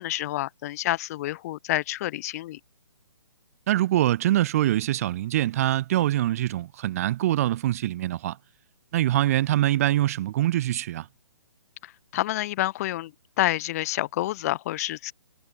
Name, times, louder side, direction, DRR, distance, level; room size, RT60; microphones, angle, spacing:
voice 1, 0.0-2.6 11.8-15.1, left 15 dB, 30° left, 0.9 m, -28 dB
voice 2, 3.7-8.4 8.9-11.1, right 13 dB, 30° right, 0.5 m, -24 dB
hypercardioid pair, 145°, 15 cm